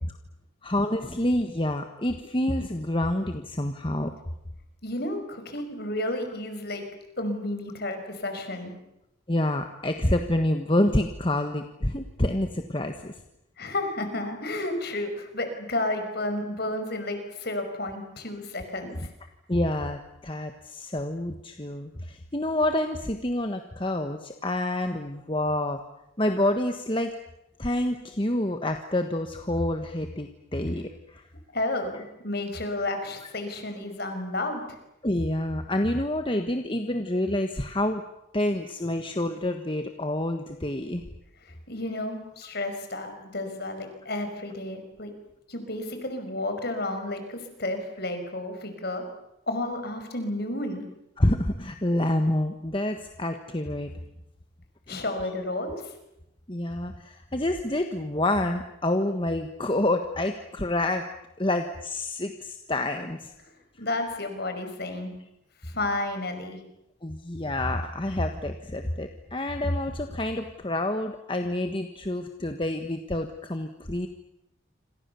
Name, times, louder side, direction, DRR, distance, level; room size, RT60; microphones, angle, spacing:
voice 1, 0.6-4.1 9.3-13.1 19.5-25.8 26.2-27.1 27.6-31.2 35.0-38.0 38.3-41.0 51.2-53.9 54.9-55.0 56.5-61.1 61.4-63.3 67.0-74.1, left 1 dB, 25° left, 6 dB, 1.4 m, -28 dB
voice 2, 4.8-6.8 7.2-8.7 13.6-19.1 31.5-34.8 41.4-45.1 45.5-49.0 49.5-50.9 54.9-55.9 63.4-63.5 63.8-65.1 65.6-66.6, left 2 dB, 50° left, 7 dB, 5.5 m, -32 dB
27.5 x 26.5 x 7.0 m, 0.85 s
head